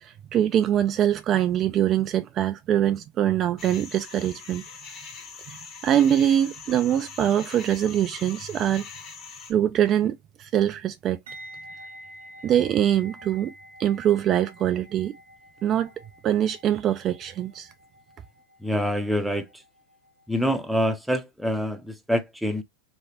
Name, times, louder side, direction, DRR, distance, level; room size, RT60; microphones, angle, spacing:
voice 1, 0.0-4.6 5.5-5.6 5.8-8.9 9.5-11.2 12.4-13.5 13.8-15.2 15.6-15.9 16.2-17.7, right 10 dB, 35° right, 0.3 m, -23 dB
sound 1, 3.6-9.5, left 5 dB, 35° left, 1.2 m, -42 dB
sound 2, 11.3-20.2 20.5-20.8, equal, 85° right, 0.8 m, -48 dB
voice 2, 18.6-19.5 20.3-22.6, equal, ahead, 0.6 m, -26 dB
3.1 x 3.1 x 2.8 m
hypercardioid pair, 115°, 0 cm